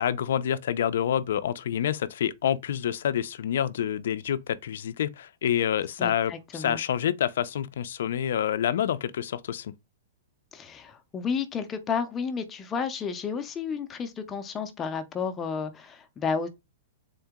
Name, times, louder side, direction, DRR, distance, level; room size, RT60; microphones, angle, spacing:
voice 1, 0.0-9.7, left 9 dB, 70° left, 0.4 m, -27 dB
voice 2, 6.0-6.8 10.5-16.5, left 6 dB, 15° left, 0.5 m, -32 dB
3.8 x 2.7 x 3.5 m
hypercardioid pair, 165°, 0 cm